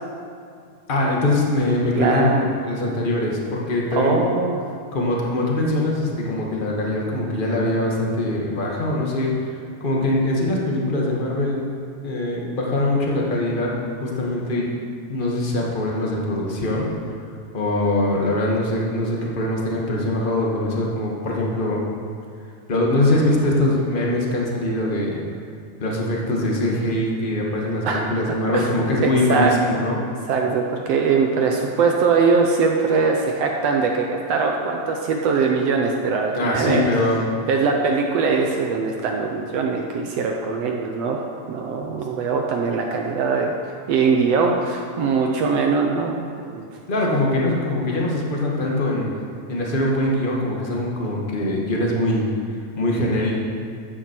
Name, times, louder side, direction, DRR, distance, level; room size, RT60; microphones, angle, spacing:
voice 1, 0.9-4.2 4.9-11.7 12.0-14.7 15.1-16.9 17.5-21.8 22.7-25.2 25.8-30.0 36.4-37.2 46.9-49.1 49.5-52.3 52.8-53.4, left 1 dB, 40° left, -2 dB, 0.7 m, -22 dB
voice 2, 2.0-2.4 3.9-4.7 27.8-28.0 28.3-28.7 29.0-29.8 30.3-36.9 37.5-43.5 43.9-46.8, right 4 dB, 70° right, 1 dB, 1.6 m, -21 dB
13.5 x 9.1 x 4.5 m, 2.3 s
omnidirectional pair, 3.6 m